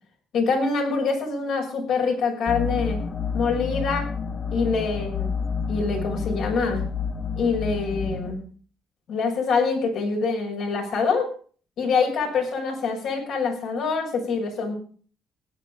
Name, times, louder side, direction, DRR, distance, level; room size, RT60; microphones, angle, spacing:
voice 1, 0.3-3.0 3.3-4.1 4.5-5.3 5.7-6.8 7.4-8.4 9.1-11.3 11.8-14.8, left 4 dB, 75° left, 0 dB, 6.3 m, -25 dB
sound 1, 2.5-8.3, left 6 dB, 45° left, 1.3 m, -29 dB
16.0 x 10.0 x 5.0 m, 0.43 s
supercardioid pair, 65°, 0 cm